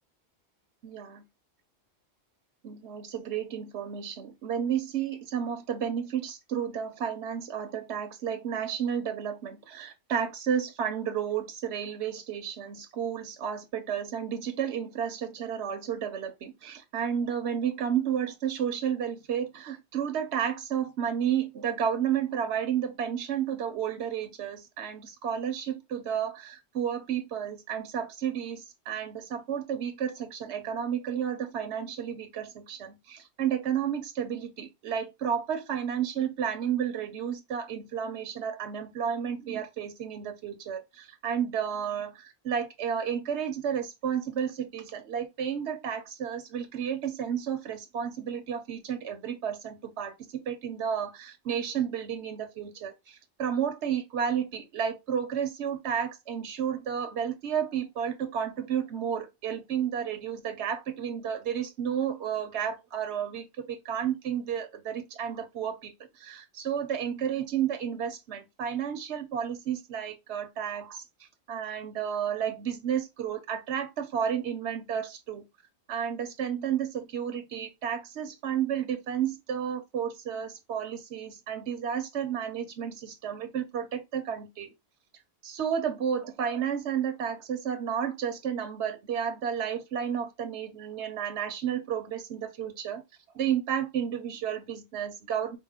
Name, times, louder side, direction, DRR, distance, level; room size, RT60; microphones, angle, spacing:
voice 1, 2.6-75.4 75.9-84.7 85.4-93.0 93.3-95.6, right 8 dB, 85° right, 1.1 m, -32 dB
4.8 x 2.0 x 3.6 m
omnidirectional pair, 1.1 m